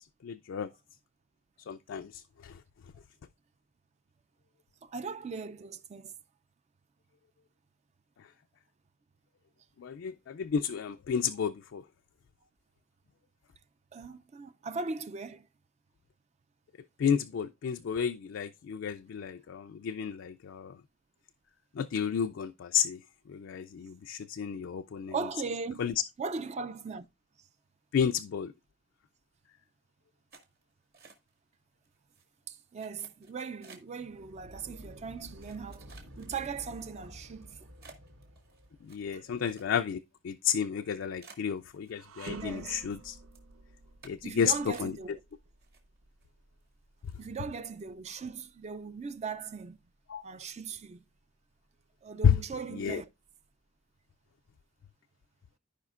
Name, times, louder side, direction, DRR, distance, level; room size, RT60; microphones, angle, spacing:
voice 1, 0.2-0.7 1.7-2.5 9.8-11.8 17.0-20.7 21.8-23.0 23.3-25.1 25.8-25.9 27.9-28.5 38.9-40.0 40.2-43.2 44.0-44.9 50.1-50.2 52.2-52.3 52.7-53.0, left 7 dB, 65° left, 0.3 m, -31 dB
voice 2, 4.8-6.1 13.9-15.5 25.1-25.8 26.2-27.1 32.5-37.6 39.1-39.2 42.4-42.8 44.2-45.2 47.2-49.8 50.2-51.0 52.0-53.1, right 5 dB, 35° right, 0.4 m, -39 dB
sound 1, 30.3-31.5 31.8-32.2 32.8-34.0 34.7-34.8 35.4-36.8 37.3-37.4 37.8-40.0 40.3-40.4 40.8-40.9 41.2-42.3 42.6-43.0 43.3-43.5 44.0-44.3 44.7-45.3 45.6-46.2 46.6-46.7 47.0-47.3, right 4 dB, 50° right, 1.8 m, -55 dB
sound 2, 34.0-39.2, equal, 75° right, 1.3 m, -51 dB
sound 3, 41.9-51.2 51.6-51.8 52.6-53.5, right 3 dB, 90° right, 0.8 m, -51 dB
15.0 x 5.0 x 2.4 m
head